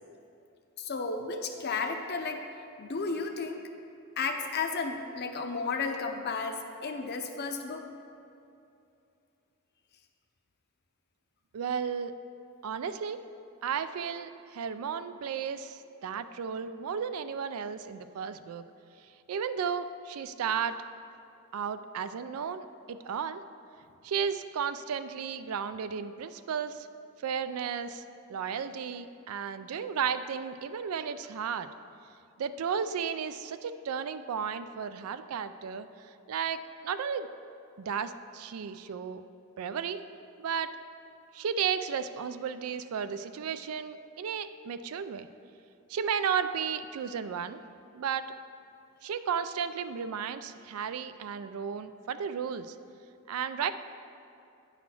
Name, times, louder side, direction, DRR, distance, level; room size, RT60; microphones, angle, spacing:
voice 1, 0.8-2.5 2.8-3.6 4.2-7.8, left 4 dB, 50° left, 5 dB, 0.6 m, -33 dB
voice 2, 11.5-12.1 12.6-13.2 13.6-18.6 19.3-20.8 21.5-23.4 24.0-26.9 27.2-28.0 28.3-31.7 32.4-35.9 36.3-37.3 37.8-39.2 39.6-40.0 40.4-40.7 41.3-45.3 45.9-47.6 47.9-48.3 49.0-52.7 53.3-53.7, right 7 dB, 80° right, 12 dB, 0.4 m, -34 dB
9.6 x 4.1 x 5.8 m, 2.6 s
head